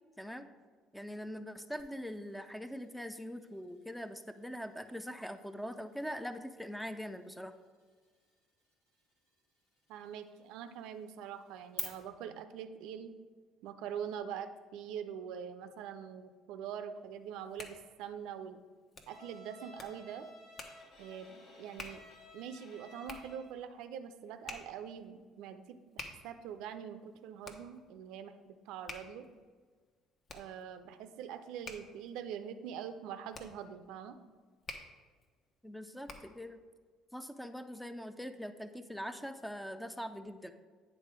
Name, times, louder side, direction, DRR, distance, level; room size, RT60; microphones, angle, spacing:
voice 1, 0.2-0.5 0.9-7.5 35.6-36.6 37.1-40.5, equal, 5° left, 9 dB, 0.5 m, -42 dB
sound 1, 1.8-11.8, left 1 dB, 80° left, 2.0 m, -53 dB
voice 2, 9.9-13.1 13.6-18.6 19.1-20.3 21.0-22.0 22.3-29.3 30.3-34.2, right 8 dB, 65° right, 10 dB, 0.5 m, -44 dB
Hands, 17.2-36.5, left 3 dB, 40° left, 0.9 m, -52 dB
Bowed string instrument, 19.1-23.6, equal, 65° left, 1.7 m, -55 dB
9.1 x 3.6 x 4.8 m, 1.6 s
figure-of-eight pair, 55°, 0 cm